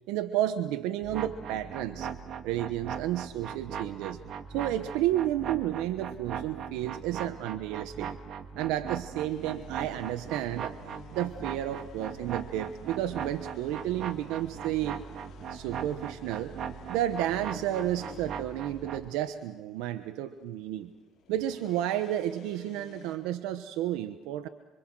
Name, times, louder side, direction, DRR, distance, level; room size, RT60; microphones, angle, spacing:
voice 1, 0.1-2.1 2.4-4.2 4.5-8.1 8.6-10.7 11.1-15.0 15.5-16.5 16.9-20.9 21.3-24.5, right 12 dB, 85° right, 9 dB, 1.1 m, -31 dB
sound 1, 1.0-19.1, right 7 dB, 55° right, 1.8 m, -39 dB
sound 2, 9.3-23.2, left 7 dB, 60° left, 5.0 m, -53 dB
26.5 x 25.5 x 6.3 m, 1.1 s
cardioid pair, 110°, 0 cm